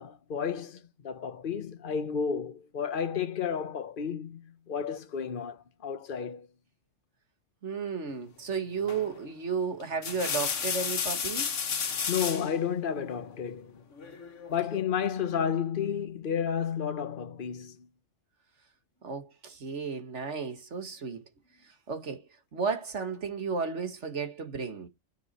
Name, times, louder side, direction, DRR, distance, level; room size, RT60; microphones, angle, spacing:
voice 1, 0.0-6.5 12.1-13.8 14.5-17.8, left 7 dB, 45° left, 1.1 m, -32 dB
voice 2, 7.6-11.6 19.0-21.2 21.9-24.9, right 5 dB, 60° right, 2.0 m, -33 dB
sound 1, 8.9-9.2 9.8-12.5 14.0-14.6, left 6 dB, 65° left, 1.6 m, -32 dB
9.7 x 6.5 x 4.4 m
omnidirectional pair, 1.3 m